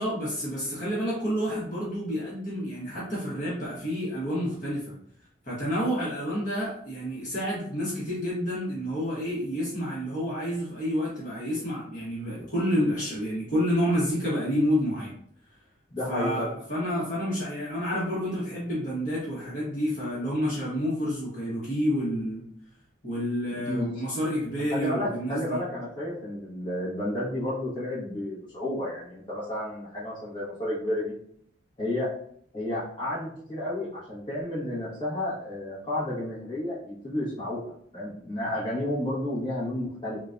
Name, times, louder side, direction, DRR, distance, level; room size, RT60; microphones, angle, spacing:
voice 1, 0.0-4.9 5.4-15.1 16.1-22.4 23.0-25.6, equal, 45° left, -8 dB, 1.2 m, -29 dB
voice 2, 15.9-16.5 23.5-23.8 24.8-31.1 31.8-32.1 32.5-40.2, left 1 dB, 25° left, -9 dB, 1.3 m, -31 dB
3.8 x 2.3 x 2.6 m, 0.65 s
head